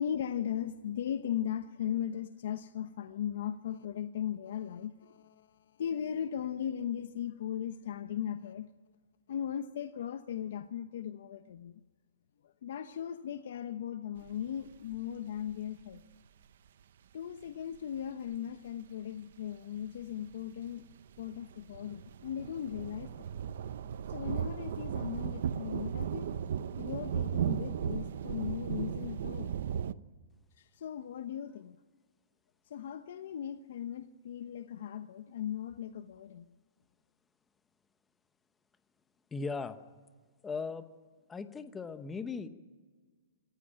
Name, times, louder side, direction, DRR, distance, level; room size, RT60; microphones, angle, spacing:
voice 1, 0.0-8.7 9.3-11.7 12.6-16.0 17.1-20.8 21.2-23.3 24.1-26.3 26.8-29.5 30.6-31.8 32.7-36.5, left 9 dB, 55° left, 1.0 m, -38 dB
sound 1, 14.2-15.0 15.5-15.6 15.9-16.0 18.3-18.4 20.2-20.4 20.7-29.9, right 8 dB, 55° right, 0.8 m, -36 dB
voice 2, 39.3-39.8 40.4-40.9 41.3-42.5, left 4 dB, 10° left, 1.0 m, -37 dB
27.0 x 15.0 x 8.8 m
hypercardioid pair, 170°, 0 cm